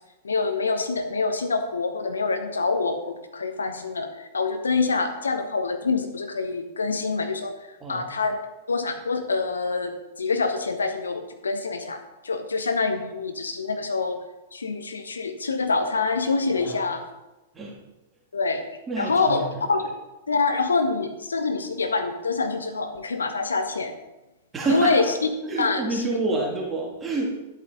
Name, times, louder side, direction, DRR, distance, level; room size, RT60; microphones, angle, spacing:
voice 1, 0.2-7.5 7.9-8.4 8.7-14.2 14.5-17.0 18.3-18.7 19.0-19.9 20.3-23.9 24.7-25.0 25.6-26.1, left 4 dB, 80° left, 6 dB, 1.1 m, -26 dB
voice 2, 16.5-16.9 17.5-17.7 18.9-19.8 24.5-25.1 25.5-27.3, right 2 dB, 20° right, -2 dB, 2.0 m, -28 dB
10.0 x 8.4 x 4.1 m, 1.0 s
figure-of-eight pair, 100°, 0 cm